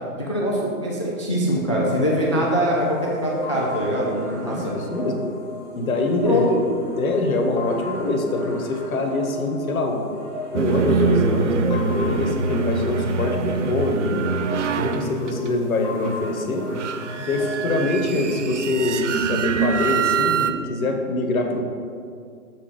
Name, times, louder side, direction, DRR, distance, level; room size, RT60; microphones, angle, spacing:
voice 1, 0.2-4.7 6.2-6.6, equal, 20° left, -3 dB, 0.4 m, -23 dB
sound 1, 1.8-18.4, left 2 dB, 5° left, 1.3 m, -36 dB
voice 2, 4.3-5.2 5.7-6.5 7.0-10.0 10.5-14.2 14.7-16.7 17.2-21.6, left 2 dB, 65° left, 3 dB, 1.3 m, -24 dB
sound 2, 10.5-20.5, right 5 dB, 55° right, 0.5 m, -24 dB
7.1 x 4.5 x 4.9 m, 2.3 s
hypercardioid pair, 140°, 45 cm